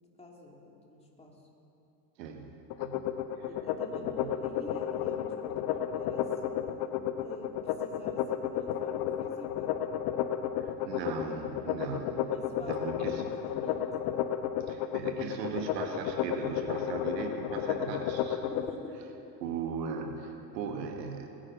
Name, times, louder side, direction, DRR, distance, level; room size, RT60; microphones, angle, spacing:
voice 1, 0.2-1.3 3.5-6.7 7.2-7.5 7.8-9.7 12.2-13.8 18.5-19.0, left 1 dB, 15° left, -1 dB, 2.8 m, -46 dB
voice 2, 2.2-3.1 3.4-3.5 4.0-4.4 10.6-12.3 12.6-13.3 14.7-18.5 19.4-21.3, right 5 dB, 85° right, 4 dB, 1.6 m, -38 dB
sound 1, 2.7-18.7, left 10 dB, 55° left, 0.9 m, -32 dB
21.5 x 9.9 x 5.3 m, 2.8 s
supercardioid pair, 100°, 48 cm